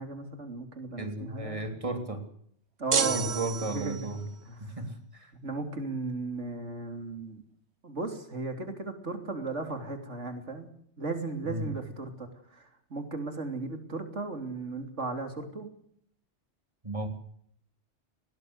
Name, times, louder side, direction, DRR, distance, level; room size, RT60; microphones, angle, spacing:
voice 1, 0.0-1.6 2.8-3.3 3.6-4.1 4.5-4.8 5.4-7.4 7.8-10.7 11.0-15.7, right 3 dB, 85° right, 6 dB, 3.5 m, -36 dB
voice 2, 1.0-2.3 3.1-4.3 4.6-5.3 11.4-11.7 16.8-17.1, right 2 dB, 30° right, 6 dB, 3.3 m, -35 dB
sound 1, 2.9-4.2, right 6 dB, 65° right, 1.6 m, -30 dB
20.5 x 18.0 x 8.1 m, 0.66 s
omnidirectional pair, 1.2 m